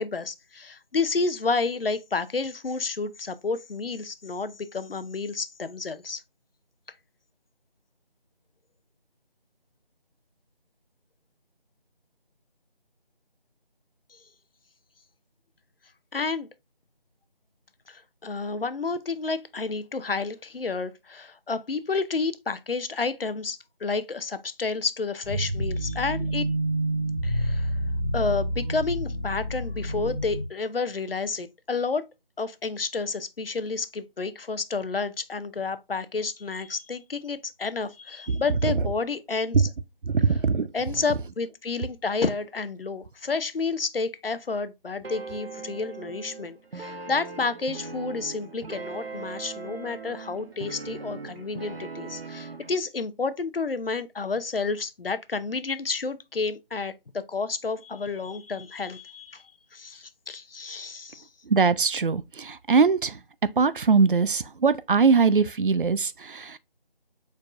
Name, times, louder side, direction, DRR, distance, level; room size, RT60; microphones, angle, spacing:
voice 1, 0.0-6.2 16.1-16.5 17.9-26.5 27.2-27.7 28.1-32.0 32.4-39.7 40.3-40.4 40.7-59.4 59.7-61.3, left 4 dB, 70° left, 0.7 m, -30 dB
sound 1, 25.2-30.4, right 1 dB, 15° right, 1.1 m, -28 dB
voice 2, 40.1-40.7 61.5-62.2 62.7-63.1 63.6-66.1, right 5 dB, 60° right, 0.5 m, -20 dB
sound 2, 45.0-52.8, right 4 dB, 85° right, 1.0 m, -39 dB
4.7 x 4.5 x 2.5 m
figure-of-eight pair, 165°, 29 cm